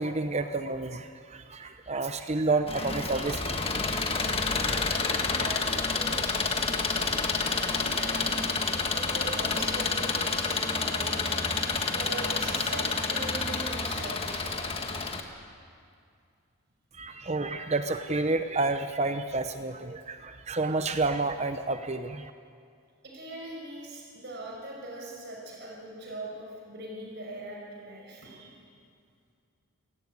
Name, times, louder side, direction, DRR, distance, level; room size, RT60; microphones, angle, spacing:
voice 1, 0.0-4.1 16.9-22.3, right 3 dB, 30° right, 9 dB, 0.7 m, -30 dB
Engine, 2.7-15.2, left 4 dB, 25° left, 1.6 m, -29 dB
voice 2, 4.4-8.4 8.9-11.4 11.7-14.6 23.0-28.5, right 2 dB, 50° right, -2 dB, 5.8 m, -41 dB
28.0 x 17.5 x 9.6 m, 2.3 s
head